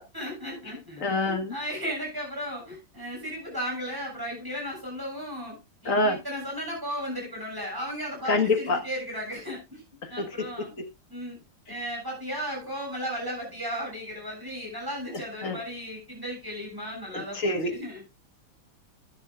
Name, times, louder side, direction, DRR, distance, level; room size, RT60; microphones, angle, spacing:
voice 1, 0.1-5.6 5.8-9.8 10.1-10.8 11.1-11.4 11.7-18.1, equal, 10° right, -2 dB, 7.3 m, -35 dB
voice 2, 1.0-1.6 5.9-6.2 8.3-8.8 10.0-10.5 10.8-10.9 15.4-15.6 17.1-17.7, left 2 dB, 45° left, 6 dB, 1.7 m, -26 dB
13.0 x 11.0 x 2.4 m, 0.24 s
omnidirectional pair, 2.1 m